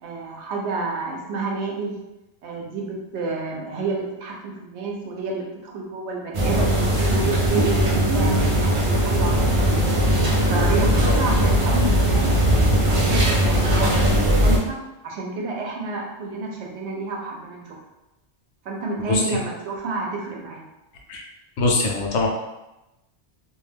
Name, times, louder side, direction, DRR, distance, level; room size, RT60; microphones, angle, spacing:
voice 1, 0.0-1.9 2.4-7.8 8.1-9.8 10.5-12.4 12.9-14.8 15.0-17.8 18.6-20.6, right 3 dB, 80° right, -1 dB, 0.9 m, -30 dB
sound 1, 6.3-14.6, equal, 50° right, 0.4 m, -19 dB
voice 2, 21.6-22.3, left 3 dB, 90° left, 0 dB, 0.9 m, -21 dB
2.4 x 2.2 x 3.3 m, 0.98 s
omnidirectional pair, 1.2 m